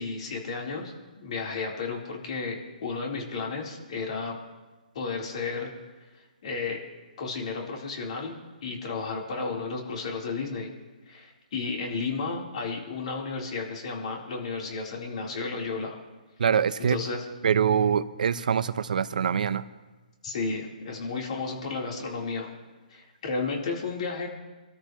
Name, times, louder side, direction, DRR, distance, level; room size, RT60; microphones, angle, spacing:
voice 1, 0.0-4.4 4.9-5.7 6.4-6.8 7.2-10.7 11.1-16.0 16.9-17.2 20.2-22.5 22.9-24.3, left 4 dB, 50° left, -1 dB, 4.0 m, -33 dB
voice 2, 16.4-17.0 17.4-19.6, right 7 dB, 65° right, 12 dB, 0.9 m, -24 dB
26.5 x 13.5 x 3.2 m, 1.2 s
hypercardioid pair, 165°, 5 cm